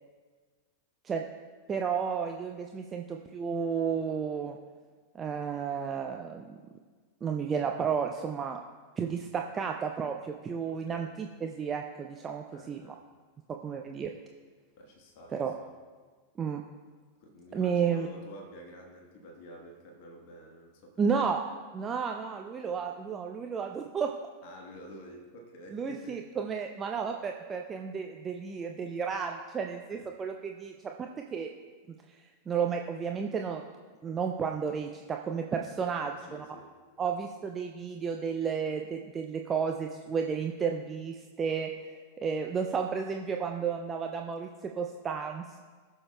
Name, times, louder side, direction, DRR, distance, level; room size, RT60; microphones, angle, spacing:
voice 1, 1.7-4.6 5.1-6.6 7.2-8.6 9.0-12.9 13.5-14.1 15.3-15.5 16.4-16.6 17.5-18.1 21.0-21.4 21.7-24.1 25.7-31.5 32.5-33.6 34.0-36.5 37.0-45.6, right 6 dB, 20° right, 3 dB, 0.5 m, -32 dB
voice 2, 10.7-11.1 12.5-13.1 14.8-15.7 17.2-21.3 24.4-26.2 29.9-30.1 35.8-36.7, equal, 50° left, 2 dB, 1.2 m, -50 dB
18.5 x 6.5 x 2.2 m, 1.5 s
figure-of-eight pair, 90°, 0 cm